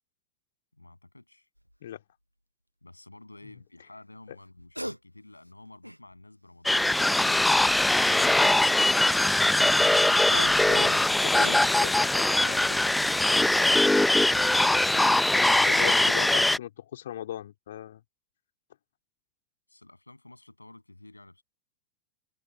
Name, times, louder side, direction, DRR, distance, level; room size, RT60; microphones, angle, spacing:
voice 1, 0.7-1.5 2.8-6.9 19.7-21.4, left 2 dB, 85° left, 7.7 m, -51 dB
sound 1, 1.6-1.8 4.5-5.0 5.4-6.2 7.2-7.9 10.0-12.0 12.5-12.7, equal, 90° right, 0.9 m, -39 dB
sound 2, 6.7-16.6, left 1 dB, 5° left, 0.7 m, -22 dB
voice 2, 10.7-12.8 15.7-18.0, left 11 dB, 60° left, 3.8 m, -39 dB
figure-of-eight pair, 90°, 0 cm